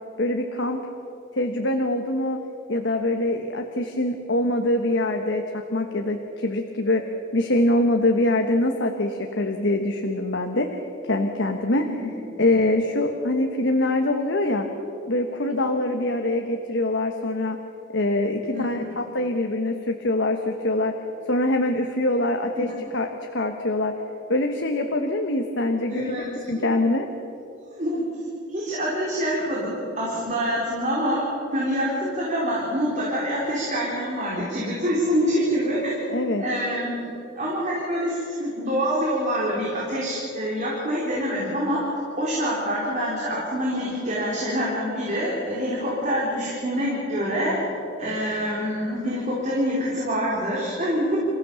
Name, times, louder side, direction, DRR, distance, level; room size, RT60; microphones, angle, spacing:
voice 1, 0.2-0.8 1.3-2.4 2.7-11.8 12.4-14.7 15.1-17.6 17.9-21.0 21.3-24.0 24.3-27.1 36.1-36.4, left 1 dB, 65° left, 4 dB, 1.3 m, -24 dB
voice 2, 11.8-12.2 18.5-18.9 22.6-22.7 25.9-26.3 26.5-26.7 27.8-28.0 28.5-31.2 31.5-36.0 36.2-41.8 42.2-47.5 48.0-51.2, equal, 40° right, -5 dB, 4.1 m, -26 dB
28.0 x 15.5 x 7.1 m, 2.9 s
head